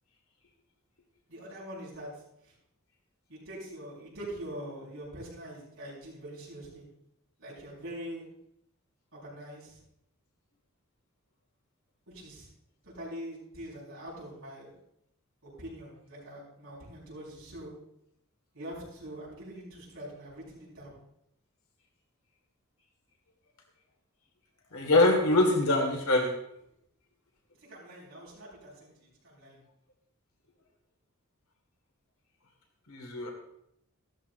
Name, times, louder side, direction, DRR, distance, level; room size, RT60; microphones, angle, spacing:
voice 1, 1.3-2.1 2.4-2.5 3.3-6.8 7.4-8.3 9.1-9.8 12.1-12.5 12.8-14.7 15.4-17.7 18.5-21.0 27.6-29.6, right 1 dB, 65° right, -6 dB, 5.3 m, -44 dB
voice 2, 24.7-26.3 32.9-33.3, left 2 dB, 85° left, 1 dB, 1.9 m, -24 dB
15.5 x 13.0 x 2.6 m, 0.76 s
head